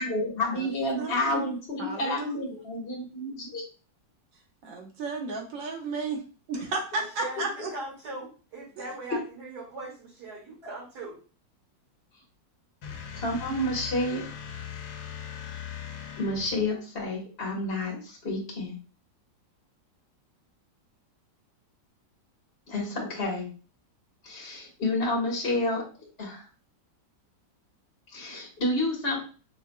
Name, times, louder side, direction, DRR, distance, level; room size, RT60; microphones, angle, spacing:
voice 1, 0.0-3.6 13.1-14.3 16.2-18.7 22.7-23.5 24.2-25.8 26.2-26.4 28.1-29.2, left 1 dB, 35° left, -2 dB, 1.6 m, -30 dB
voice 2, 1.0-1.5 1.8-2.3 4.6-6.2 6.5-7.7 8.8-8.9, right 3 dB, 80° right, 1 dB, 1.8 m, -33 dB
voice 3, 7.0-11.2, right 2 dB, 55° right, -5 dB, 2.6 m, -40 dB
sound 1, 12.8-16.7, left 8 dB, 75° left, 1.3 m, -39 dB
5.2 x 3.5 x 2.3 m, 0.36 s
omnidirectional pair, 2.0 m